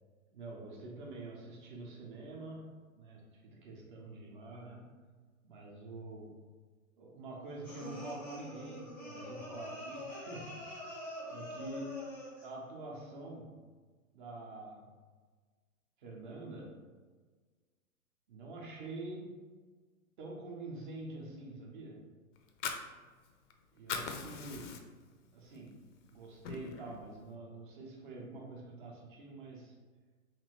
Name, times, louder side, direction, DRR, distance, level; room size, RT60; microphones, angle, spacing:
voice 1, 0.3-5.0 5.4-6.4 7.0-10.6 11.2-12.1 12.4-13.6 14.1-14.9 16.0-16.8 18.3-19.5 20.2-22.0 23.7-24.9 25.3-29.8, right 2 dB, 35° right, -1 dB, 0.7 m, -46 dB
sound 1, 7.6-12.5, equal, 5° left, 0.5 m, -45 dB
Fire, 22.4-23.5 23.8-25.1 25.5-25.7 26.1-27.0, left 5 dB, 60° left, 0.5 m, -40 dB
3.0 x 2.5 x 2.9 m, 1.4 s
hypercardioid pair, 125°, 43 cm